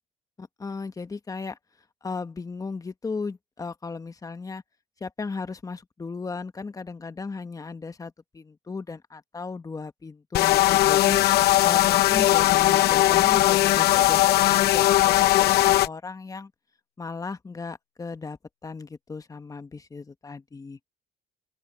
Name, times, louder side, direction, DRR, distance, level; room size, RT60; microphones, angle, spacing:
voice 1, 0.4-1.6 2.0-4.6 5.0-16.5 17.0-20.8, left 4 dB, 20° left, 1.3 m, -36 dB
sound 1, 10.3-15.9, left 15 dB, 70° left, 0.8 m, -19 dB
open air
cardioid pair, 110°, 17 cm